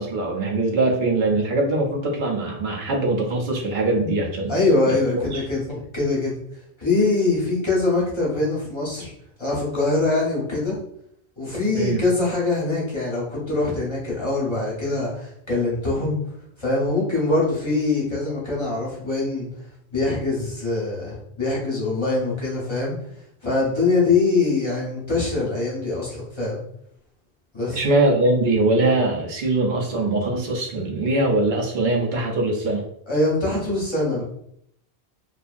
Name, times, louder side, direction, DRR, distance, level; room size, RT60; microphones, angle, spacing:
voice 1, 0.0-4.5 5.1-5.4 11.7-12.0 27.7-32.8, right 2 dB, 55° right, 0 dB, 0.7 m, -22 dB
voice 2, 4.5-6.3 6.8-9.1 9.4-10.8 11.4-16.2 16.6-19.5 19.9-22.9 23.4-26.6 27.5-27.8 33.1-34.2, left 3 dB, 30° left, -6 dB, 0.9 m, -23 dB
2.6 x 2.4 x 2.5 m, 0.71 s
omnidirectional pair, 1.1 m